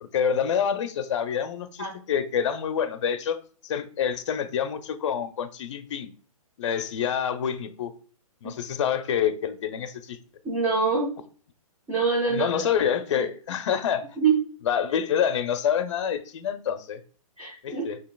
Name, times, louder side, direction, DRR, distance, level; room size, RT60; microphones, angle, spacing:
voice 1, 0.0-3.4 3.6-6.1 6.6-7.9 8.4-10.2 12.3-14.1 14.6-17.0 17.6-18.0, left 8 dB, 55° left, 0.5 m, -27 dB
voice 2, 10.4-11.1 11.9-12.7 14.2-14.3 17.4-17.8, right 5 dB, 15° right, 0.8 m, -24 dB
6.8 x 2.8 x 2.2 m
hypercardioid pair, 155°, 19 cm